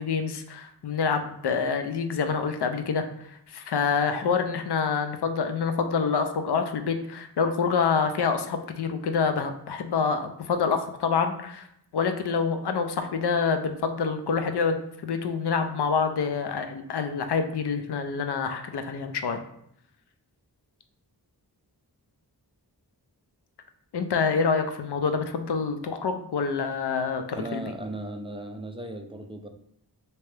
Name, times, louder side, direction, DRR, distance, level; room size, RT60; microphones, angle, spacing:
voice 1, 0.0-3.1 3.5-11.7 11.9-19.4 23.9-27.6, left 5 dB, 75° left, 7 dB, 0.5 m, -27 dB
voice 2, 27.3-29.5, right 1 dB, 15° right, 5 dB, 0.3 m, -36 dB
3.3 x 2.9 x 3.2 m, 0.73 s
wide cardioid pair, 75°, 41 cm